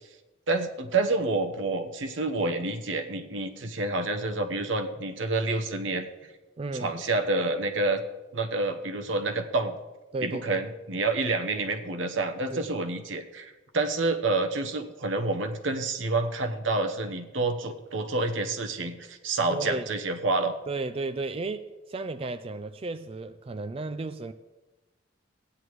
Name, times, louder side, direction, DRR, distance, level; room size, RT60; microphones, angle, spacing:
voice 1, 0.5-6.3 6.8-8.0 8.3-9.8 10.2-20.5, right 3 dB, 85° right, 1.0 m, -28 dB
voice 2, 6.6-6.9 10.1-10.6 12.5-12.7 19.5-19.9 20.7-24.3, right 3 dB, 30° right, 0.3 m, -34 dB
15.5 x 9.9 x 3.1 m
head